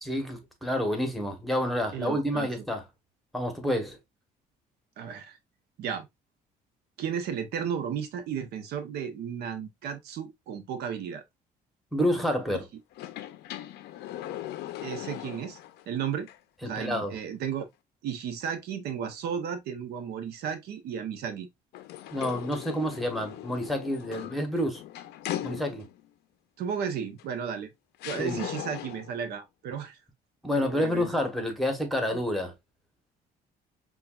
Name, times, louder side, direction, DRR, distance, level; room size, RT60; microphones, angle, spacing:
voice 1, 0.0-2.8 3.3-4.0 11.9-12.7 16.6-17.2 22.1-24.8 25.4-25.9 28.2-28.4 30.4-32.5, equal, ahead, 1.1 m, -29 dB
voice 2, 1.9-2.6 5.0-5.4 5.8-6.1 7.0-11.2 14.8-15.6 15.9-16.3 16.6-17.6 18.0-21.5 26.6-27.7 28.0-30.0 30.5-31.1, right 7 dB, 70° right, 0.7 m, -34 dB
sound 1, 12.9-15.8 16.3-16.4 21.7-26.1 27.2-27.3 28.0-29.2, left 13 dB, 80° left, 0.5 m, -39 dB
5.5 x 2.4 x 2.3 m
cardioid pair, 110°, 17 cm